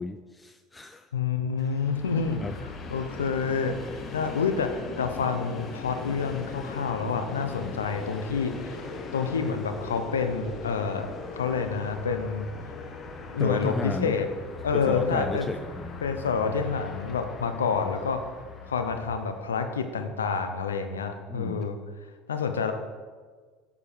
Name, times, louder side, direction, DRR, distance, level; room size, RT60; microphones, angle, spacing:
voice 1, 0.0-1.1 1.6-1.8 2.4-2.6 13.4-14.1 14.7-15.9 21.3-21.6, left 3 dB, 20° left, 8 dB, 0.4 m, -33 dB
voice 2, 1.1-2.5 2.9-3.8 4.1-8.8 9.1-11.1 11.3-12.5 13.3-14.3 14.6-15.5 16.0-18.2 18.7-21.8 22.3-22.7, left 5 dB, 90° left, 7 dB, 0.7 m, -28 dB
Train, 1.7-19.8, left 4 dB, 40° left, 1.1 m, -40 dB
9.0 x 4.9 x 5.0 m, 1.5 s
hypercardioid pair, 75°, 0 cm